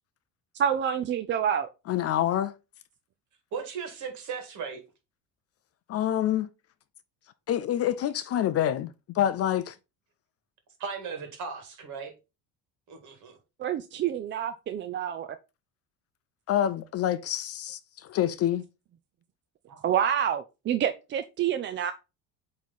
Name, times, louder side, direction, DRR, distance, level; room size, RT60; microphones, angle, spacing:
voice 1, 0.5-1.7 13.6-15.3 19.8-21.9, right 9 dB, 30° right, 0.4 m, -27 dB
voice 2, 1.9-2.5 5.9-6.5 7.5-9.7 16.5-18.7, left 11 dB, 40° left, 0.4 m, -27 dB
voice 3, 3.5-4.8 10.8-12.1 12.9-13.4 19.7-19.8, right 5 dB, 50° right, 2.0 m, -37 dB
8.2 x 3.2 x 4.1 m
cardioid pair, 140°, 38 cm